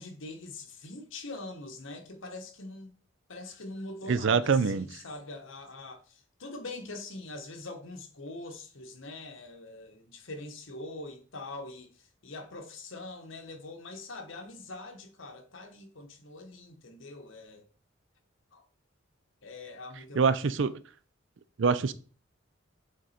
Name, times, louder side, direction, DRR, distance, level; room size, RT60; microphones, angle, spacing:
voice 1, 0.0-3.0 3.3-17.7 18.5-18.6 19.4-20.4, left 2 dB, 85° left, 1.2 m, -43 dB
voice 2, 4.1-4.9 20.1-20.8 21.6-21.9, right 5 dB, 70° right, 0.5 m, -25 dB
7.3 x 3.9 x 4.3 m
head